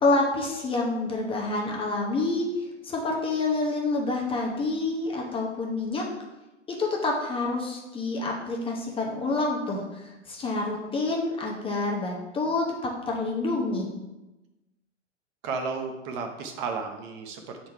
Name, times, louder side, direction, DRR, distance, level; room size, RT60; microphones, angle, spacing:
voice 1, 0.0-2.5 2.8-6.0 6.7-13.9, left 3 dB, 15° left, -1 dB, 0.8 m, -28 dB
voice 2, 15.4-17.7, right 5 dB, 40° right, 4 dB, 0.9 m, -33 dB
6.1 x 4.0 x 4.5 m, 1.0 s
hypercardioid pair, 125°, 36 cm